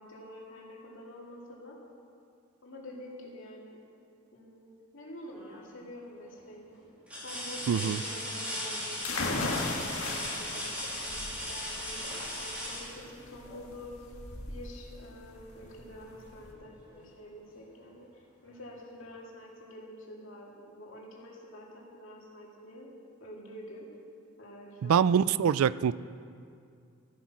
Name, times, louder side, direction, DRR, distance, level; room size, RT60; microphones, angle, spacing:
voice 1, 0.0-1.8 2.6-3.8 4.3-6.8 7.2-9.0 9.8-13.9 14.5-22.9 23.2-23.9 24.4-25.0, left 1 dB, 60° left, -3 dB, 2.7 m, -47 dB
sound 1, 5.3-5.8 6.3-6.4 7.1-13.7 15.5-15.7 16.1-17.2 18.5-18.6, left 1 dB, 5° right, 2.8 m, -38 dB
voice 2, 7.7-8.0 24.8-25.9, right 7 dB, 80° right, 18 dB, 0.3 m, -24 dB
sound 2, 9.0-16.5, left 3 dB, 80° left, 1.7 m, -37 dB
13.0 x 10.5 x 6.2 m, 2.4 s
head